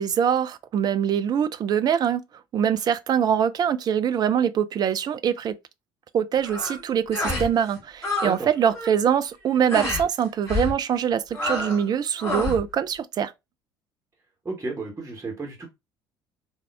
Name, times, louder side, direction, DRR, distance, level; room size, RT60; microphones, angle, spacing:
voice 1, 0.0-2.2 2.5-5.5 6.1-13.3, right 8 dB, 35° right, 0.4 m, -23 dB
sound 1, 6.4-6.8 7.1-7.5 7.8-8.4 8.6-9.0 9.7-10.0 10.5-10.8 11.3-11.8 12.2-12.6, left 2 dB, 20° left, 2.3 m, -28 dB
voice 2, 14.4-15.7, right 3 dB, 15° right, 1.1 m, -32 dB
3.5 x 2.3 x 3.3 m
figure-of-eight pair, 60°, 12 cm